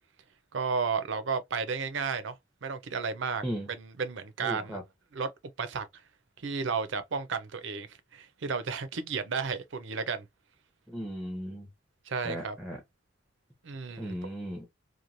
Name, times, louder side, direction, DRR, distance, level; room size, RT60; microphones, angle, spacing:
voice 1, 0.5-2.4 2.6-4.8 5.1-5.3 5.6-5.9 6.4-7.9 8.1-10.3 12.1-12.6 13.6-14.2, right 5 dB, 70° right, 0.5 m, -33 dB
voice 2, 4.4-4.8 10.9-11.7 12.2-12.8 14.0-14.7, equal, ahead, 0.6 m, -36 dB
3.0 x 2.2 x 2.5 m
head